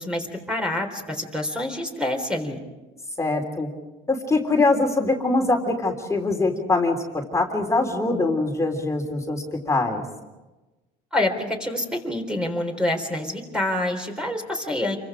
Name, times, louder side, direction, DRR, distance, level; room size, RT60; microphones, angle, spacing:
voice 1, 0.0-2.6 11.1-15.0, left 1 dB, 5° right, 2 dB, 3.8 m, -27 dB
voice 2, 3.2-3.7 4.1-10.0, left 2 dB, 15° left, 2 dB, 3.4 m, -23 dB
28.5 x 24.0 x 5.0 m, 1.1 s
cardioid pair, 120°, 20 cm